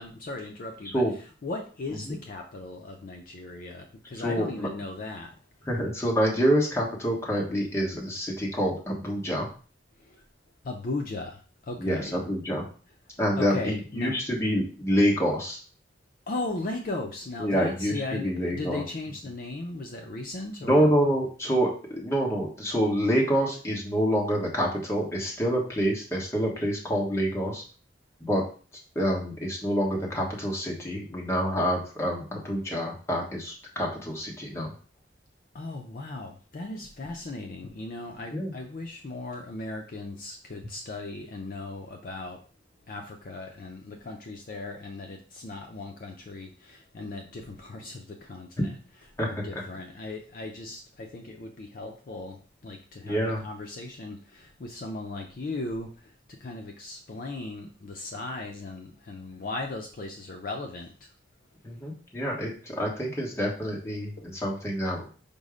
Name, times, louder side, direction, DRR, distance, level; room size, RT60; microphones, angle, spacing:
voice 1, 0.0-5.3 10.0-10.2 10.6-12.2 12.9-13.0 13.3-14.2 16.3-20.9 35.5-42.4 42.9-61.1 64.2-64.3, left 2 dB, 50° left, 3 dB, 0.5 m, -37 dB
voice 2, 4.2-4.7 5.7-9.5 11.8-12.6 13.2-15.6 17.4-18.8 20.6-27.6 28.2-28.4 28.9-34.7 38.3-38.5 49.2-49.3 49.5-49.6 53.0-53.4 61.6-65.1, equal, 15° left, -3 dB, 1.1 m, -27 dB
5.2 x 2.1 x 4.8 m, 0.39 s
head